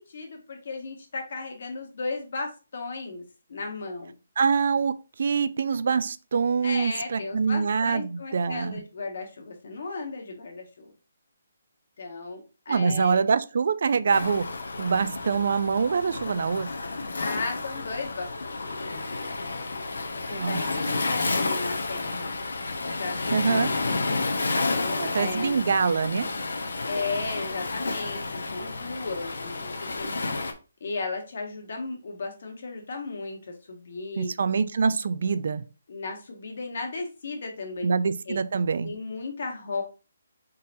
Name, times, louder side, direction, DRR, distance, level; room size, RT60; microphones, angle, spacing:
voice 1, 0.0-3.2 3.5-4.1 6.6-10.9 12.0-13.2 17.2-18.5 20.1-22.4 23.0-23.7 24.7-25.6 26.9-30.3 30.8-34.3 35.9-37.9 38.2-38.4 38.8-39.8, left 3 dB, 55° left, 1.3 m, -35 dB
voice 2, 4.4-8.8 12.7-14.5 14.8-16.7 20.3-20.6 23.3-23.7 25.0-26.3 34.2-35.6 37.8-38.9, right 5 dB, 55° right, 0.4 m, -25 dB
Waves surf, 14.1-30.5, left 3 dB, 85° left, 0.8 m, -31 dB
4.1 x 3.8 x 2.6 m
hypercardioid pair, 170°, 0 cm